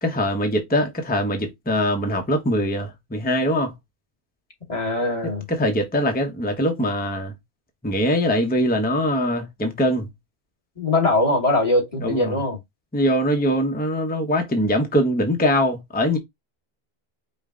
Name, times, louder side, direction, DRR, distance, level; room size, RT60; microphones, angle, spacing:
voice 1, 0.0-3.7 5.5-7.3 7.8-10.1 12.0-12.4 12.9-16.2, equal, 10° left, 0.7 m, -22 dB
voice 2, 4.7-5.5 10.8-12.6, left 2 dB, 35° left, 1.6 m, -21 dB
5.3 x 2.2 x 3.7 m
omnidirectional pair, 1.1 m